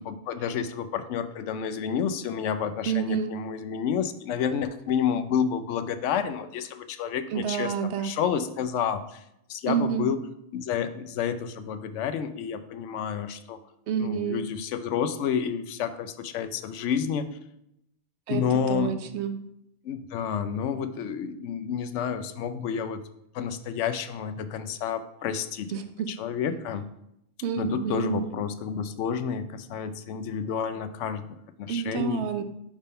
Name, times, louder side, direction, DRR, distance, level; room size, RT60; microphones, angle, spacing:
voice 1, 0.1-7.7 8.0-9.2 9.5-10.2 10.5-13.6 14.0-17.4 18.3-19.0 19.8-23.0 23.3-25.7 26.1-26.9 27.6-32.3, left 7 dB, 85° left, 10 dB, 0.9 m, -30 dB
voice 2, 2.9-3.3 7.3-8.1 9.6-10.1 13.9-14.4 18.3-19.4 25.7-26.1 27.4-28.3 31.7-32.4, right 8 dB, 70° right, 8 dB, 0.9 m, -29 dB
5.0 x 3.6 x 5.4 m, 0.79 s
omnidirectional pair, 1.2 m